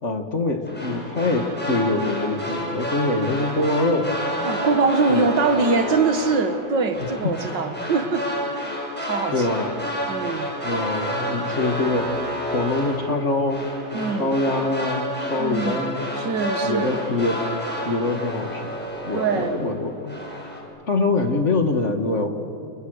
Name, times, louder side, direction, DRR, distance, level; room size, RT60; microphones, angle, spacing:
voice 1, 0.0-4.1 5.1-5.3 7.0-7.1 9.3-9.8 10.6-12.1 12.5-13.6 13.9-16.2 16.6-17.4 17.9-18.7 19.0-20.2 20.9-22.3, left 2 dB, 40° left, 5 dB, 2.2 m, -24 dB
sound 1, 0.7-19.8 20.1-20.6, equal, 5° left, 5.8 m, -30 dB
voice 2, 4.4-9.5 10.1-10.5 13.9-14.3 15.4-15.8 16.2-17.0 19.1-19.6, right 4 dB, 70° right, 8 dB, 2.2 m, -23 dB
30.0 x 29.0 x 6.6 m, 2.5 s
omnidirectional pair, 2.0 m